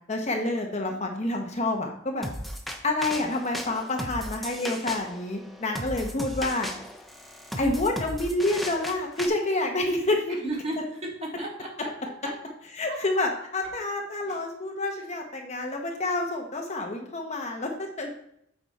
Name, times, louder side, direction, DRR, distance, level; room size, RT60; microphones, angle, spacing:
voice 1, 0.1-2.3 2.8-6.7 7.6-10.4 12.8-18.1, left 2 dB, 35° left, 2 dB, 1.0 m, -28 dB
sound 1, 2.2-9.3, equal, ahead, 0.7 m, -36 dB
voice 2, 10.4-11.9 12.2-12.3 14.2-14.4, right 1 dB, 30° right, -2 dB, 2.0 m, -34 dB
8.5 x 4.9 x 4.2 m, 0.73 s
head